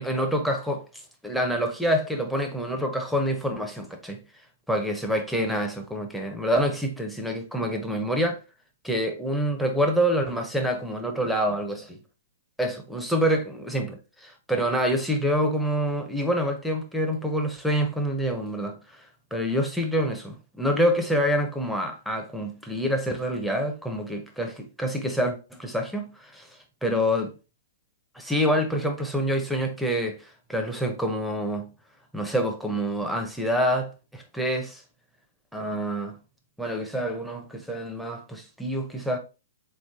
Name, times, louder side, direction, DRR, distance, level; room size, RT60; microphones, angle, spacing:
voice 1, 0.0-4.2 4.7-8.4 8.8-12.0 12.6-27.3 28.1-31.7 32.1-34.8 35.5-36.2 36.6-39.2, equal, ahead, 0.8 m, -27 dB
3.8 x 3.2 x 3.6 m
hypercardioid pair, 120°, 0 cm